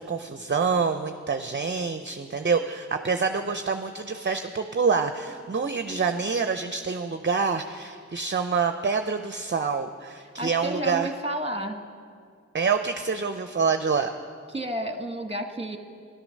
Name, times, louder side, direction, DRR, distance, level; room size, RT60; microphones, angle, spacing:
voice 1, 0.0-11.1 12.5-14.1, right 5 dB, 40° right, 8 dB, 0.6 m, -26 dB
voice 2, 10.4-11.8 14.5-15.8, right 1 dB, 20° right, 5 dB, 1.3 m, -31 dB
13.0 x 11.5 x 6.4 m, 2.2 s
wide cardioid pair, 50°, 30 cm